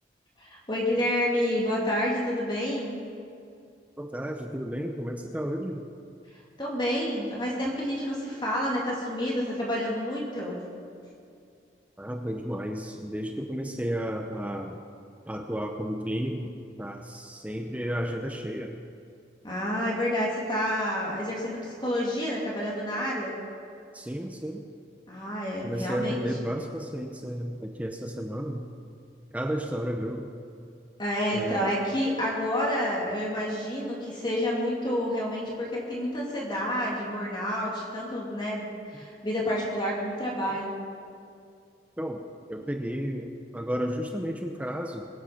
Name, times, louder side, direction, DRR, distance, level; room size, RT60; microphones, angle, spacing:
voice 1, 0.4-2.9 6.6-10.5 19.4-23.3 25.1-26.2 31.0-38.7 38.9-40.7, equal, 25° left, -4 dB, 2.7 m, -29 dB
voice 2, 4.0-5.9 12.0-14.8 15.3-18.8 23.9-24.7 25.6-28.7 29.3-30.3 31.3-31.7 40.5-40.6 42.0-45.1, equal, 10° right, 3 dB, 0.7 m, -32 dB
22.5 x 8.8 x 5.9 m, 2.4 s
head